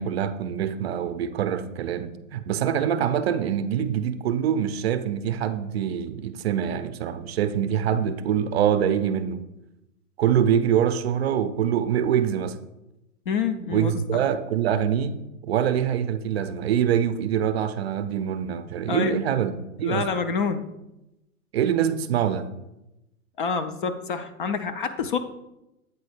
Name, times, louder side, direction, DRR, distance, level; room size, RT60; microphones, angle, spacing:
voice 1, 0.0-9.4 10.2-12.6 13.7-19.5 19.8-20.1 21.5-22.4, right 9 dB, 45° right, 10 dB, 0.5 m, -24 dB
voice 2, 13.3-14.2 18.9-19.2 19.8-20.7 23.4-25.2, left 5 dB, 40° left, 8 dB, 0.4 m, -27 dB
8.4 x 4.1 x 4.9 m, 0.92 s
figure-of-eight pair, 115°, 44 cm